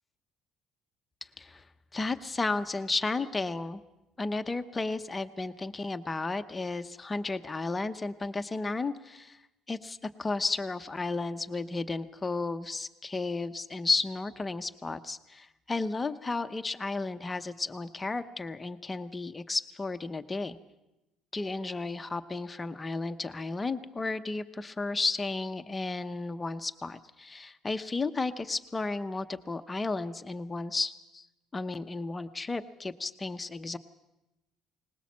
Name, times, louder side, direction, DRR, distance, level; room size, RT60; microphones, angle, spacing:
voice 1, 1.9-3.8 4.2-9.4 9.7-20.6 21.3-31.3 31.5-33.8, left 3 dB, 15° left, 9 dB, 0.7 m, -33 dB
21.5 x 20.0 x 7.4 m, 0.96 s
cardioid pair, 160°, 0 cm